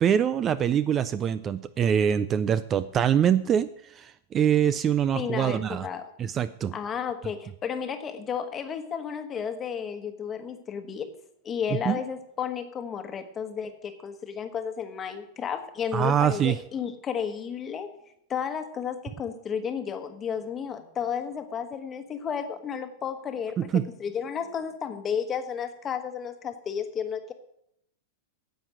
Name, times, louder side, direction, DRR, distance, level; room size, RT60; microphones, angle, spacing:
voice 1, 0.0-5.9 6.2-6.7 11.9-12.0 15.9-16.6 23.6-23.9, right 9 dB, 25° right, 15 dB, 0.4 m, -24 dB
voice 2, 5.1-6.1 6.7-11.1 11.4-17.9 18.3-27.3, left 7 dB, 20° left, 7 dB, 1.2 m, -32 dB
10.0 x 7.8 x 7.4 m, 0.74 s
supercardioid pair, 145°, 0 cm